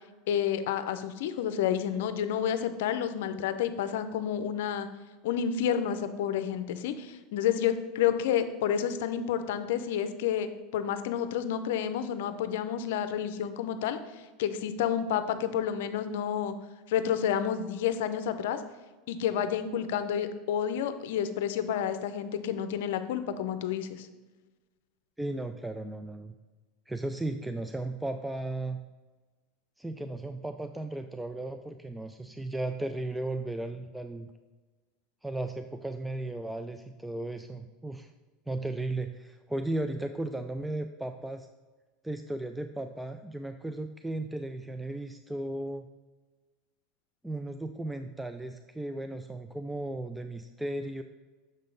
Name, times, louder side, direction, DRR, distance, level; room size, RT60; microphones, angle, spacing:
voice 1, 0.3-4.9 5.2-16.5 16.9-18.6 19.1-24.1, left 9 dB, 75° left, 10 dB, 0.5 m, -30 dB
voice 2, 25.2-26.4 26.9-28.8 29.8-34.3 35.2-38.1 38.5-41.5 42.0-45.9 47.2-51.0, right 2 dB, 5° right, 7 dB, 0.3 m, -35 dB
6.5 x 3.7 x 5.1 m, 1.2 s
hypercardioid pair, 100°, 0 cm